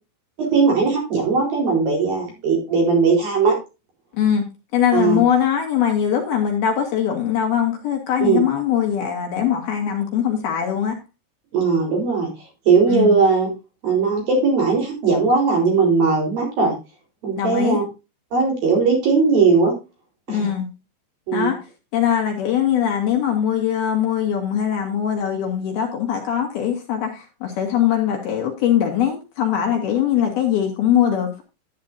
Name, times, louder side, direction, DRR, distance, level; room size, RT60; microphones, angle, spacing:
voice 1, 0.4-3.6 4.9-5.2 8.2-8.4 11.5-12.3 12.7-13.5 13.8-16.7 17.2-17.8 18.3-19.7 20.3-20.5 21.3-21.5, right 4 dB, 50° right, -1 dB, 5.7 m, -18 dB
voice 2, 4.1-4.5 4.7-11.0 12.9-13.2 17.4-17.8 20.3-20.7 21.3-21.6 21.9-31.4, left 9 dB, 60° left, 2 dB, 3.2 m, -21 dB
11.0 x 10.5 x 2.6 m, 0.28 s
omnidirectional pair, 5.5 m